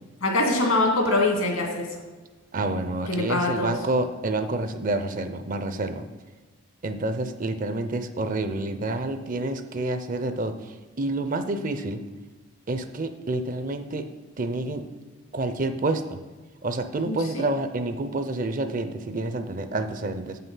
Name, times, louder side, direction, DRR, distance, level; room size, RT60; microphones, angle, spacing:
voice 1, 0.2-1.9 3.1-3.7 17.1-17.4, left 2 dB, 85° left, 1 dB, 2.0 m, -23 dB
voice 2, 2.5-6.0 6.8-12.0 12.7-14.0 14.4-14.8 15.3-16.2 16.6-20.4, right 2 dB, 40° right, 9 dB, 0.5 m, -28 dB
7.9 x 5.6 x 5.6 m, 1.3 s
head